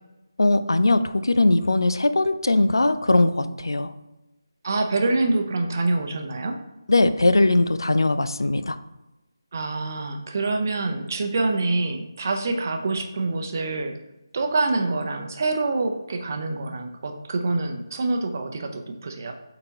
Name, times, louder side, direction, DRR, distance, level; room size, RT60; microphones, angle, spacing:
voice 1, 0.4-3.9 6.9-8.8, left 2 dB, 70° left, 12 dB, 0.4 m, -20 dB
voice 2, 4.6-6.6 9.5-14.0 14.3-19.3, right 3 dB, 40° right, 5 dB, 0.7 m, -26 dB
8.5 x 3.9 x 2.9 m, 0.98 s
figure-of-eight pair, 155°, 2 cm